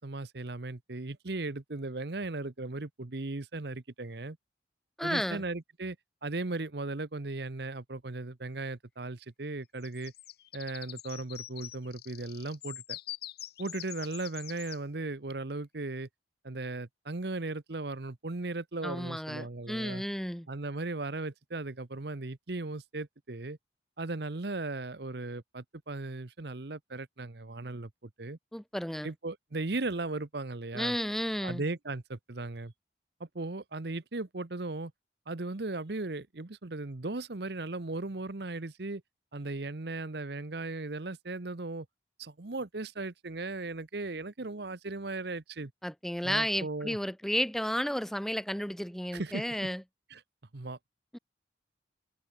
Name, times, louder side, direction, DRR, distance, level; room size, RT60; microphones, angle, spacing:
voice 1, 0.0-4.4 5.0-6.0 6.2-10.1 10.5-13.0 13.6-16.1 16.4-20.0 20.5-23.6 24.0-28.4 29.0-31.0 31.4-32.7 33.2-34.9 35.3-39.0 39.3-41.9 42.2-45.7 46.2-47.0 49.1-49.4 50.1-50.2 50.5-50.8, right 2 dB, 60° right, 1.0 m, -37 dB
voice 2, 5.0-5.4 18.8-20.5 28.5-29.1 30.7-31.6 45.8-49.8 51.1-51.2, equal, ahead, 0.7 m, -32 dB
sound 1, 9.8-14.8, left 13 dB, 55° left, 1.9 m, -44 dB
head